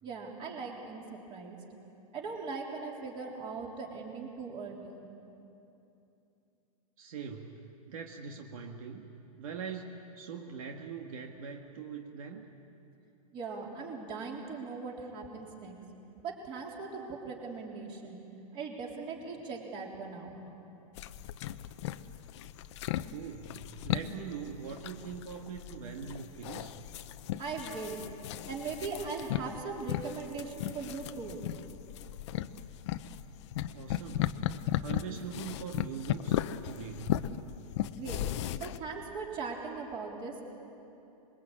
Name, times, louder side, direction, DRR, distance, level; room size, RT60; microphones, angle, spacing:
voice 1, 0.0-1.6 2.1-5.1 13.3-15.8 16.2-18.2 18.5-20.4 27.4-28.0 28.5-31.4 37.9-38.3 38.6-40.5, right 4 dB, 25° right, 0 dB, 3.7 m, -40 dB
voice 2, 7.0-9.1 9.4-12.5 23.1-26.9 33.7-37.4, right 6 dB, 65° right, 2 dB, 1.9 m, -42 dB
sound 1, 21.0-38.8, left 12 dB, 50° left, 0.8 m, -36 dB
26.5 x 22.0 x 8.7 m, 2.8 s
supercardioid pair, 155°, 19 cm